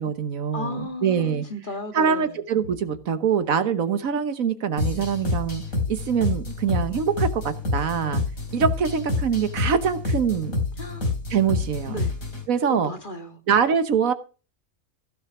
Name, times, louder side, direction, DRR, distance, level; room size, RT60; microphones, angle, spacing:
voice 1, 0.0-1.4 1.9-5.6 5.9-8.2 8.5-10.5 11.3-11.9 12.5-12.9 13.5-14.1, right 7 dB, 75° right, 11 dB, 1.5 m, -24 dB
voice 2, 0.5-2.4 10.8-11.1 11.9-12.1 12.7-13.4, left 1 dB, 35° left, 6 dB, 1.8 m, -34 dB
sound 1, 4.8-12.4, left 3 dB, 70° left, 4.3 m, -28 dB
15.5 x 6.3 x 6.1 m, 0.35 s
omnidirectional pair, 1.5 m